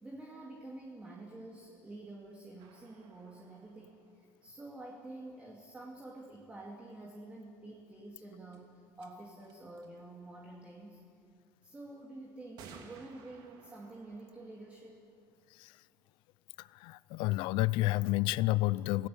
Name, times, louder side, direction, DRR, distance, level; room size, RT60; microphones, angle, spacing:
voice 1, 0.0-11.0 11.6-15.0, right 2 dB, 15° right, -1 dB, 2.3 m, -48 dB
sound 1, 2.6-5.3 7.9-8.0 8.5-8.6 8.9-9.1 9.4-10.0 11.2-11.3 12.6-16.1, right 5 dB, 65° right, 2.8 m, -58 dB
voice 2, 16.6-19.1, left 18 dB, 75° left, 19 dB, 0.5 m, -30 dB
27.5 x 17.0 x 7.1 m, 2.2 s
cardioid pair, 140°, 8 cm